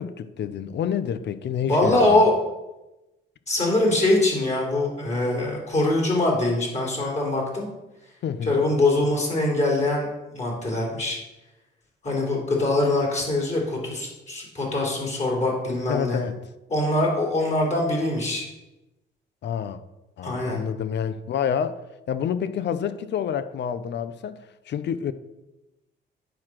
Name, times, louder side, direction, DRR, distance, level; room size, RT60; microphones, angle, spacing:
voice 1, 0.0-2.3 8.2-8.6 15.9-16.4 19.4-19.8 20.2-21.8 22.1-25.1, left 8 dB, 60° left, 13 dB, 0.7 m, -28 dB
voice 2, 1.7-2.3 3.5-7.7 8.5-11.2 12.0-16.2 16.7-18.5 20.2-20.6, left 2 dB, 35° left, -2 dB, 3.3 m, -23 dB
9.3 x 4.9 x 5.9 m, 1.0 s
cardioid pair, 90°, 20 cm